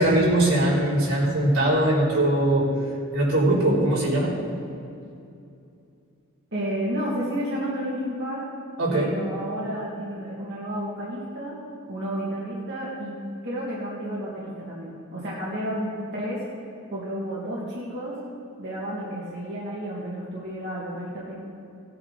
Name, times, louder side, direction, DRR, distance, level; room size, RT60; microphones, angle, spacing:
voice 1, 0.0-2.7 3.1-4.3 8.8-9.1, right 1 dB, 80° right, -6 dB, 3.5 m, -21 dB
voice 2, 6.5-8.5 8.9-11.6 11.9-13.2 13.4-16.4 16.9-18.2 18.6-21.4, equal, 55° right, -6 dB, 2.1 m, -31 dB
17.5 x 8.8 x 4.1 m, 2.5 s
head